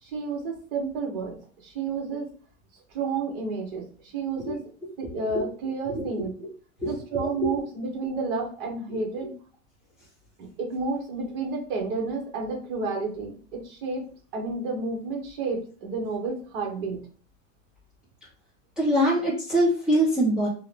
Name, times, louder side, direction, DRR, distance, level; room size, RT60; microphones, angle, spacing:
voice 1, 0.0-2.3 2.9-4.6 5.0-6.3 6.8-9.3 10.4-14.0 14.3-17.0, right 4 dB, 45° right, 1 dB, 1.0 m, -31 dB
voice 2, 5.0-5.4 5.9-6.5 6.8-7.6 18.8-20.5, equal, ahead, -10 dB, 0.6 m, -25 dB
2.7 x 2.1 x 3.2 m, 0.41 s
supercardioid pair, 170°, 41 cm